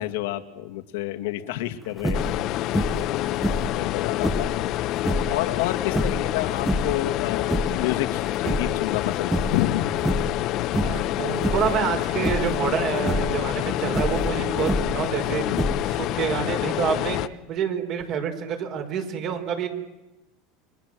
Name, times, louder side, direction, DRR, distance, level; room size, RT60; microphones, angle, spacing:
voice 1, 0.0-3.3 3.7-4.5 5.2-9.9 14.4-14.5 15.5-15.7, left 14 dB, 80° left, 7 dB, 2.3 m, -29 dB
sound 1, 2.0-2.4 2.7-3.1 3.4-4.6 5.0-5.3 5.9-7.0 7.4-7.9 8.3-9.0 9.3-9.7 10.0-10.4 10.7-11.1 11.4-11.8 12.2-12.6 13.0-13.3 13.9-15.0 15.5-16.1, equal, 5° right, 1.7 m, -27 dB
sound 2, 2.1-17.3, left 15 dB, 50° left, 1.0 m, -27 dB
voice 2, 10.7-15.4 16.0-17.2 17.5-19.7, right 7 dB, 50° right, 5 dB, 5.0 m, -27 dB
30.0 x 23.0 x 7.8 m, 1.0 s
supercardioid pair, 120°, 0 cm